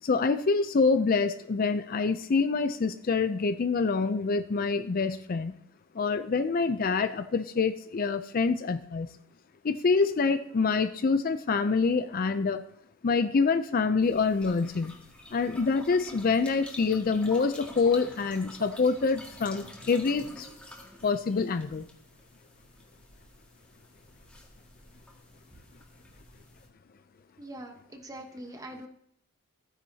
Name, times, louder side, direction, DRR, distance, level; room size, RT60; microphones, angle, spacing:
voice 1, 0.0-5.5 5.9-9.1 9.6-12.6 13.0-14.9 15.3-20.5 21.0-21.9, left 4 dB, 40° left, 10 dB, 0.4 m, -26 dB
sound 1, 14.0-26.7, left 1 dB, 5° left, 1.8 m, -48 dB
voice 2, 27.4-28.9, right 1 dB, 15° right, 4 dB, 1.0 m, -43 dB
14.5 x 9.7 x 2.8 m, 0.72 s
head